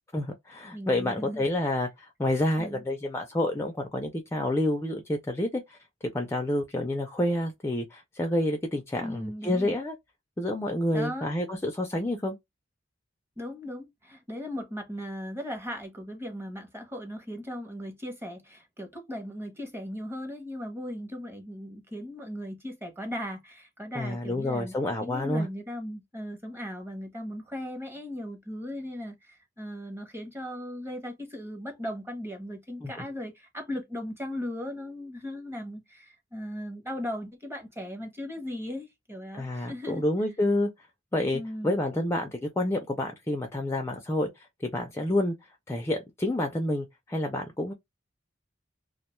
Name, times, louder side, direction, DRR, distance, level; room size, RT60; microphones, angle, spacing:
voice 1, 0.1-5.8 6.1-10.0 10.4-12.4 23.9-25.5 32.8-33.0 39.3-40.7 41.1-45.3 45.7-47.7, left 1 dB, 15° left, 0.3 m, -29 dB
voice 2, 0.7-1.5 2.6-2.8 9.0-9.8 10.9-11.3 13.4-24.7 25.0-40.0 41.3-41.8, equal, 15° right, 0.7 m, -37 dB
2.4 x 2.2 x 2.9 m
head